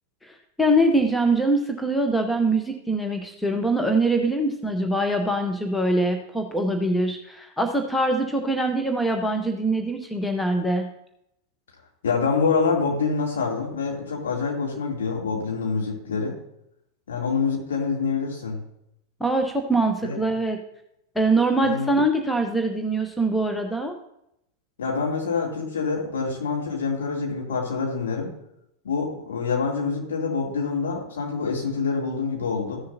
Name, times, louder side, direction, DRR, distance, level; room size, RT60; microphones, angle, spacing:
voice 1, 0.2-10.9 19.2-20.6 21.1-23.9, right 1 dB, 5° left, 4 dB, 0.9 m, -23 dB
voice 2, 12.0-16.3 17.1-18.6 20.0-20.2 21.6-21.9 24.8-28.3 28.8-32.8, left 5 dB, 65° left, -2 dB, 2.7 m, -26 dB
15.0 x 6.6 x 2.7 m, 0.79 s
figure-of-eight pair, 90°, 0 cm